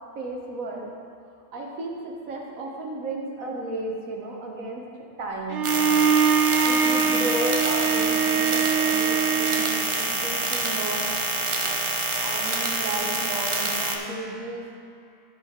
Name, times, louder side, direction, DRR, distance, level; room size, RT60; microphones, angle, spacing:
voice 1, 0.1-0.9 1.5-6.1 6.6-11.2 11.6-14.8, right 2 dB, 85° right, 0 dB, 1.6 m, -34 dB
Bowed string instrument, 5.5-9.9, right 6 dB, 65° right, 0.8 m, -23 dB
sound 1, 5.6-14.0, right 2 dB, 40° right, 0.4 m, -27 dB
13.5 x 5.0 x 3.7 m, 2.5 s
omnidirectional pair, 1.4 m